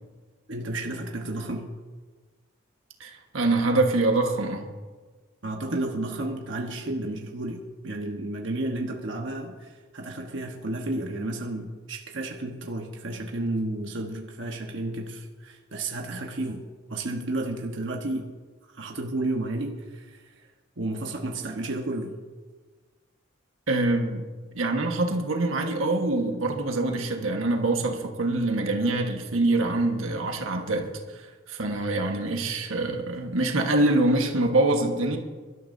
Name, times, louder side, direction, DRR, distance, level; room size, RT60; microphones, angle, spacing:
voice 1, 0.5-1.7 5.4-7.6 7.8-16.6 16.9-18.3 18.7-20.5 20.8-22.1, right 2 dB, 65° right, 1 dB, 1.2 m, -32 dB
voice 2, 3.0-4.7 23.7-24.3 24.5-35.2, right 2 dB, 85° right, 3 dB, 1.4 m, -25 dB
23.5 x 12.5 x 2.7 m, 1.4 s
head